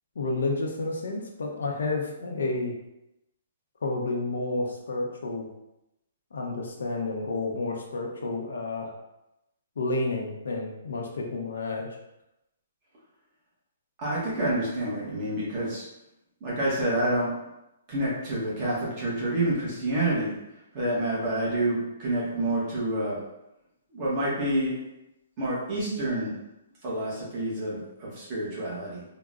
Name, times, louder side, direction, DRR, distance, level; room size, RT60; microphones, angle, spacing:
voice 1, 0.2-2.7 3.8-5.5 6.3-8.9 9.8-11.9, left 2 dB, 80° left, 0 dB, 0.6 m, -30 dB
voice 2, 14.0-15.9 16.4-17.3 17.9-20.3 20.7-23.2 23.9-24.8 25.4-26.3 26.8-29.0, right 1 dB, 20° right, -7 dB, 0.8 m, -28 dB
3.6 x 2.0 x 2.4 m, 0.89 s
hypercardioid pair, 180°, 0 cm